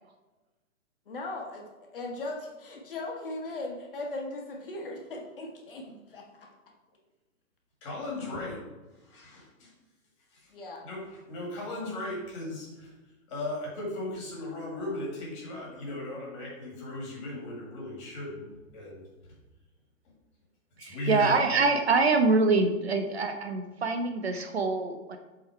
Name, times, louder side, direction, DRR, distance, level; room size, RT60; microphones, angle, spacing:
voice 1, 1.1-1.6 1.9-6.5 10.5-10.8, left 2 dB, 40° left, 0 dB, 1.1 m, -38 dB
voice 2, 7.8-8.6 9.0-9.7 10.3-10.5 10.8-12.9 13.3-19.3 20.8-21.4, left 2 dB, 20° left, -3 dB, 1.8 m, -37 dB
voice 3, 20.8-25.2, right 3 dB, 50° right, 6 dB, 0.7 m, -25 dB
7.6 x 3.8 x 4.5 m, 1.2 s
hypercardioid pair, 170°, 42 cm